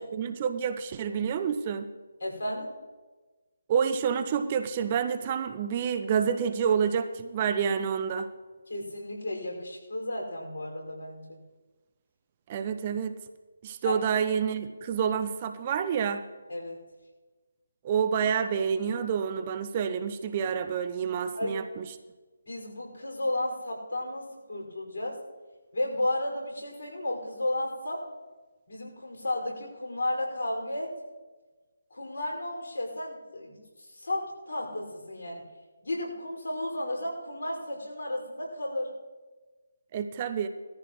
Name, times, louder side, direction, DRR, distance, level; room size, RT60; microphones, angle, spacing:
voice 1, 0.0-1.9 3.7-8.3 12.5-13.2 13.6-16.2 17.8-21.9 39.9-40.5, right 7 dB, 30° right, 10 dB, 0.7 m, -28 dB
voice 2, 2.2-2.7 8.7-11.4 13.8-14.0 16.5-16.8 21.4-21.6 22.5-25.2 25.7-28.0 28.7-30.9 31.9-35.4 35.8-38.9, left 1 dB, 70° left, -1 dB, 5.5 m, -33 dB
19.5 x 14.0 x 3.1 m, 1.3 s
figure-of-eight pair, 155°, 0 cm